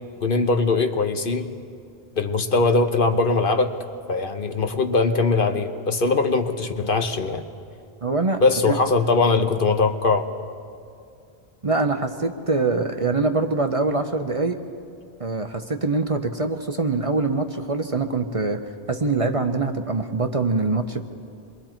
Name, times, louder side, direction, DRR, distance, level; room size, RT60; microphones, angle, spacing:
voice 1, 0.2-1.5 2.2-3.8 4.1-7.4 8.4-10.3, left 3 dB, 55° left, 6 dB, 1.2 m, -21 dB
voice 2, 8.0-8.4 8.7-8.8 11.6-14.6 15.2-18.6 18.9-21.1, right 3 dB, 35° right, 6 dB, 0.8 m, -24 dB
27.5 x 22.5 x 4.5 m, 2.4 s
omnidirectional pair, 1.1 m